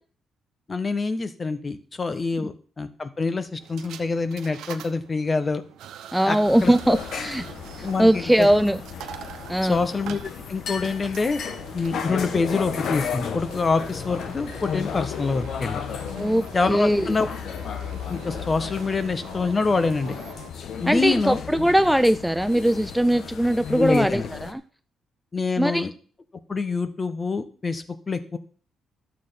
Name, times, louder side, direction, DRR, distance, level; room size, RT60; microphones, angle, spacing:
voice 1, 0.7-5.6 6.2-6.4 6.6-7.0 7.8-8.5 9.6-11.4 11.7-15.8 16.5-17.3 18.1-20.1 20.8-21.4 23.8-24.3 25.3-25.9 26.5-28.4, left 4 dB, 30° left, 11 dB, 1.4 m, -26 dB
sound 1, 3.6-20.5, right 10 dB, 85° right, 1.0 m, -44 dB
voice 2, 6.1-7.5 7.8-8.8 9.5-9.8 16.1-17.1 20.9-24.6 25.6-25.9, right 1 dB, 5° right, 12 dB, 0.4 m, -21 dB
sound 2, 6.5-24.5, left 7 dB, 70° left, 1.2 m, -34 dB
12.0 x 7.6 x 5.9 m, 0.42 s
cardioid pair, 80°, 0 cm